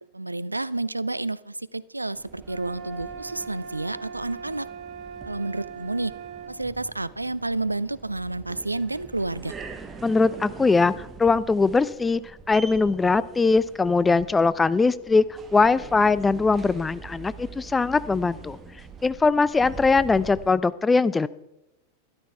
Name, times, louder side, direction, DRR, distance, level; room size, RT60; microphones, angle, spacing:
voice 1, 0.1-4.7 5.2-6.1 6.5-9.6, right 2 dB, 85° right, 19 dB, 0.3 m, -30 dB
sound 1, 2.1-20.5, right 5 dB, 20° right, 1.6 m, -44 dB
sound 2, 2.4-6.6, right 6 dB, 45° right, 1.2 m, -40 dB
voice 2, 10.0-12.2 12.5-15.2 15.5-18.6 19.0-21.3, left 4 dB, 10° left, 17 dB, 0.5 m, -21 dB
13.0 x 12.0 x 4.5 m, 0.91 s
figure-of-eight pair, 90°, 0 cm